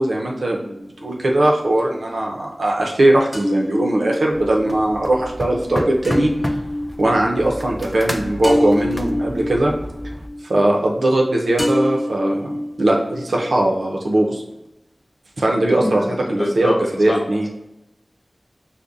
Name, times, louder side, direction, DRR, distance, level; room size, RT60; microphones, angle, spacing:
voice 1, 0.0-6.3 7.0-9.7 10.5-12.5 12.8-14.4 15.4-17.5, right 1 dB, 85° right, -1 dB, 0.5 m, -19 dB
sound 1, 0.8-1.7 3.3-11.3 11.6-13.7, left 1 dB, 25° left, 0.8 m, -26 dB
sound 2, 4.3-10.3, equal, 5° right, 0.3 m, -32 dB
voice 2, 15.7-16.8 17.1-17.2, left 1 dB, 50° left, 1 dB, 0.5 m, -24 dB
5.2 x 2.1 x 2.4 m, 0.91 s
wide cardioid pair, 45°, 0 cm